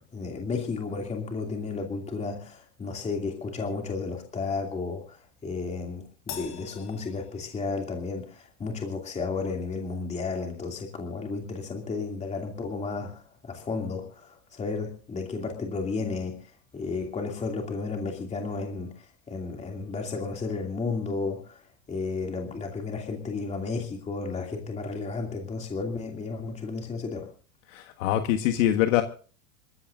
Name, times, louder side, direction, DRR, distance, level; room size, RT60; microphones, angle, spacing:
voice 1, 0.1-21.6 21.9-27.3, left 4 dB, 15° left, 2 dB, 2.7 m, -33 dB
Crash cymbal, 6.3-7.9, left 9 dB, 40° left, 4.6 m, -43 dB
voice 2, 27.7-29.0, left 12 dB, 60° left, 6 dB, 1.5 m, -24 dB
27.0 x 15.0 x 2.6 m, 0.40 s
supercardioid pair, 135°, 43 cm